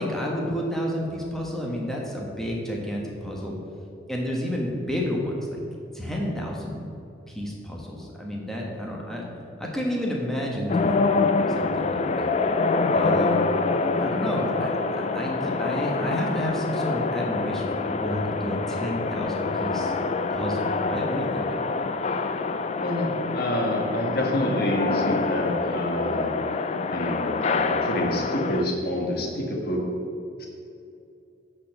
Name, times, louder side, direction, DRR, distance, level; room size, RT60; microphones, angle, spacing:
voice 1, 0.0-3.5 4.1-5.6 5.9-6.9 7.3-9.3 9.6-11.1 11.5-12.3 12.9-13.5 14.0-19.9 20.3-21.5, equal, ahead, -2 dB, 1.1 m, -30 dB
sound 1, 10.7-28.6, left 3 dB, 35° left, 0.3 m, -26 dB
voice 2, 22.8-26.3 26.9-29.8 30.4-30.5, left 1 dB, 55° left, 0 dB, 1.4 m, -27 dB
8.2 x 4.3 x 6.5 m, 2.6 s
head